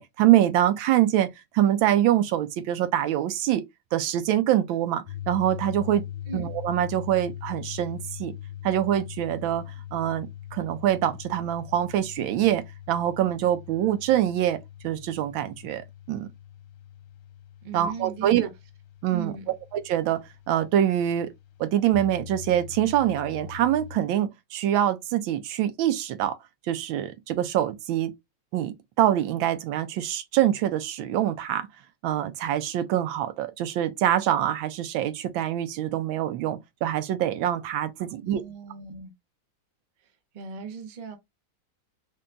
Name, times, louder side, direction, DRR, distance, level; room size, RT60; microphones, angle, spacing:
voice 1, 0.0-3.6 3.9-6.0 6.3-8.3 8.6-16.3 17.7-18.5 19.0-19.3 19.7-21.3 21.6-26.4 26.7-28.1 28.5-31.7 32.0-38.4, right 12 dB, 85° right, 1.4 m, -25 dB
sound 1, 5.1-24.0, left 11 dB, 75° left, 1.4 m, -41 dB
voice 2, 17.6-18.5 19.1-19.5 38.0-39.1 40.3-41.2, right 5 dB, 55° right, 0.5 m, -38 dB
3.9 x 2.2 x 3.7 m
omnidirectional pair, 2.1 m